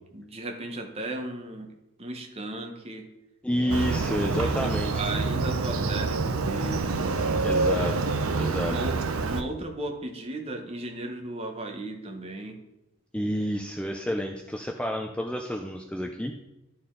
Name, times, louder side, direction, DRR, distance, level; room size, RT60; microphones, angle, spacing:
voice 1, 0.1-1.7 2.0-3.1 3.6-7.0 7.7-7.9 8.6-12.6, right 2 dB, 30° right, 3 dB, 0.9 m, -36 dB
voice 2, 3.4-5.0 5.8-6.0 7.4-8.0 8.4-8.8 13.1-16.3, equal, 5° left, 3 dB, 0.3 m, -29 dB
Motorcycle, 3.7-9.4, right 3 dB, 75° right, 0.6 m, -27 dB
11.5 x 4.3 x 3.8 m, 0.94 s
head